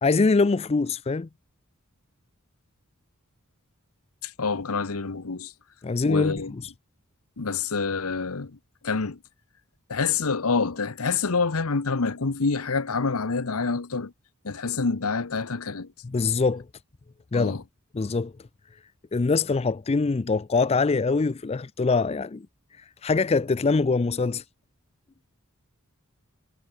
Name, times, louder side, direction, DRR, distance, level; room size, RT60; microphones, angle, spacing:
voice 1, 0.0-1.3 5.8-6.6 16.0-16.6 17.3-17.6 17.9-18.3 19.1-22.5 23.0-24.4, left 4 dB, 30° left, 0.4 m, -23 dB
voice 2, 4.2-5.5 6.0-6.5 7.4-8.6 8.8-9.2 9.9-14.1 14.4-15.9 17.3-17.6, left 4 dB, 80° left, 1.0 m, -27 dB
head